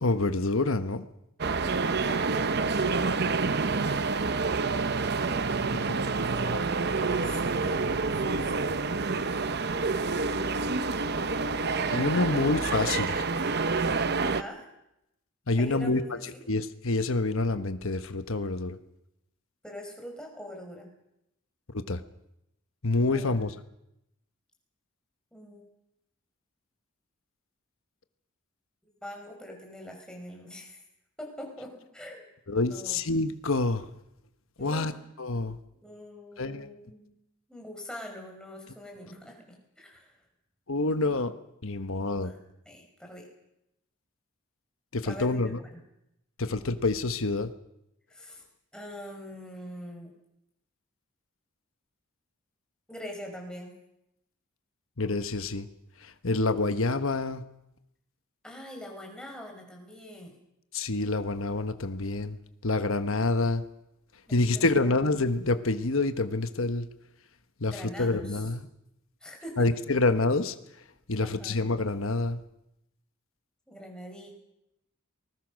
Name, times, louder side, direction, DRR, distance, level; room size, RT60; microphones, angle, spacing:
voice 1, 0.0-1.0 5.7-5.8 11.9-13.2 15.5-18.8 21.7-22.0 22.8-23.5 32.5-33.9 34.6-34.9 35.2-35.6 36.4-36.7 40.7-41.4 41.6-42.3 44.9-45.6 46.4-47.5 55.0-55.7 56.0-57.4 60.7-63.6 64.3-66.9 67.6-67.7 68.0-68.6 69.6-70.6 71.1-72.4, left 3 dB, 60° left, 10 dB, 1.2 m, -27 dB
sound 1, 1.4-14.4, right 4 dB, 45° right, 0.8 m, -28 dB
voice 2, 2.0-4.1 6.2-8.7 10.2-10.8 14.4-14.7 15.6-16.0 16.3-16.5 19.6-20.9 23.1-23.4 25.3-25.7 29.0-30.8 31.2-32.3 32.6-33.0 34.6-35.0 35.8-37.2 37.5-39.4 39.8-40.2 42.2-42.4 42.7-43.3 45.0-45.8 48.1-48.4 48.7-50.1 52.9-53.7 58.4-60.4 64.3-64.9 67.7-68.5 69.2-69.7 71.2-71.6 73.7-74.3, left 1 dB, 5° left, 1 dB, 5.3 m, -44 dB
24.0 x 20.5 x 6.4 m, 0.84 s
head